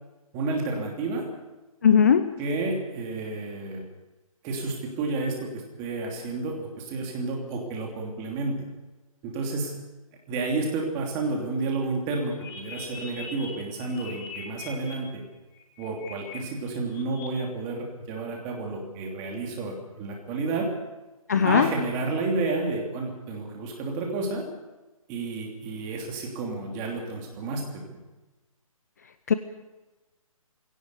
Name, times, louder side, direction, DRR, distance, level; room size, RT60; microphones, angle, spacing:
voice 1, 0.3-1.2 2.4-3.8 4.4-8.6 9.2-9.8 10.3-15.2 15.8-20.7 21.4-24.4 25.1-28.0, right 3 dB, 15° right, 1 dB, 3.0 m, -31 dB
voice 2, 1.8-2.3 21.3-21.7 29.3-29.4, left 7 dB, 30° left, 11 dB, 0.7 m, -18 dB
sound 1, 12.3-14.9 15.5-16.4 16.7-17.3, left 5 dB, 10° left, 1.9 m, -42 dB
19.0 x 17.5 x 8.2 m, 1.1 s
hypercardioid pair, 165°, 19 cm